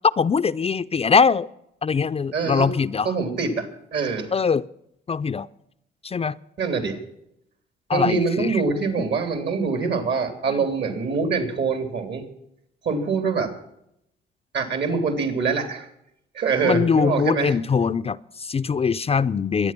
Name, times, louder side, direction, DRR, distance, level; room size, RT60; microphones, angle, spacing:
voice 1, 0.2-1.5 1.8-3.1 4.3-4.6 5.1-5.5 6.0-6.4 7.9-8.6 10.5-10.7 16.6-19.7, left 5 dB, 30° left, 13 dB, 0.5 m, -22 dB
voice 2, 2.3-2.7 3.1-4.3 6.6-7.0 7.9-12.2 12.8-13.5 14.5-15.9 16.4-17.5, right 4 dB, 60° right, 8 dB, 3.4 m, -24 dB
23.0 x 9.6 x 6.0 m, 0.78 s
cardioid pair, 90°, 20 cm